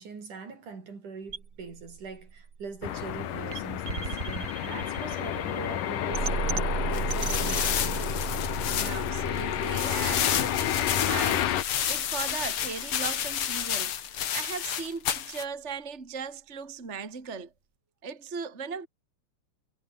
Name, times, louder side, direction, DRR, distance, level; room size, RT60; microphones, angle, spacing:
voice 1, 0.0-8.1, right 5 dB, 70° right, 6.5 m, -42 dB
sound 1, 1.3-13.3, right 6 dB, 40° right, 1.3 m, -36 dB
sound 2, 2.8-11.6, left 11 dB, 80° left, 3.1 m, -30 dB
sound 3, 6.9-15.4, left 9 dB, 50° left, 1.9 m, -31 dB
voice 2, 8.7-14.0 14.3-17.5 18.0-18.9, right 6 dB, 20° right, 2.7 m, -38 dB
omnidirectional pair, 3.8 m